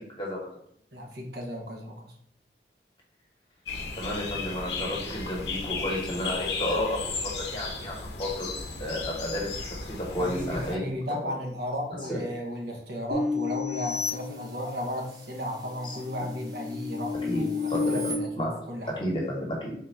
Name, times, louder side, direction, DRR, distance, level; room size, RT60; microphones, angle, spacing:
voice 1, 0.9-2.1 10.2-18.9, left 1 dB, 65° right, 1 dB, 0.8 m, -34 dB
sound 1, 3.7-10.8, left 4 dB, 85° left, 0.6 m, -35 dB
voice 2, 3.9-8.5 8.8-11.2 12.1-12.2 15.8-16.0 17.2-18.0 18.4-18.5 18.9-19.7, left 1 dB, 30° left, -3 dB, 1.1 m, -32 dB
sound 2, 13.1-15.1 15.6-18.1, left 4 dB, 25° right, 0.6 m, -32 dB
3.7 x 2.5 x 4.4 m, 0.66 s
head